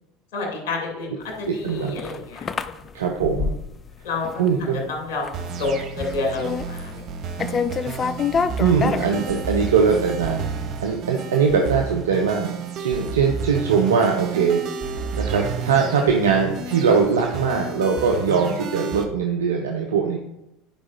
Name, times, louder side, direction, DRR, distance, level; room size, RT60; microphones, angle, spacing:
voice 1, 0.3-1.1 1.4-2.8 4.0-4.4 4.7-7.0, left 3 dB, 65° left, 0 dB, 2.5 m, -29 dB
sound 1, 1.5-4.0 4.2-4.8 5.1-5.4 5.7-7.1 7.4-9.7, left 6 dB, 30° left, 0.5 m, -27 dB
voice 2, 1.5-2.0 2.9-3.6 4.4-4.9 8.6-12.5 12.8-14.6 15.1-20.2, right 5 dB, 75° right, 2 dB, 0.8 m, -21 dB
sound 2, 5.3-19.0, right 5 dB, 45° right, 1.1 m, -31 dB
10.5 x 4.9 x 4.2 m, 0.87 s
figure-of-eight pair, 75°, 0 cm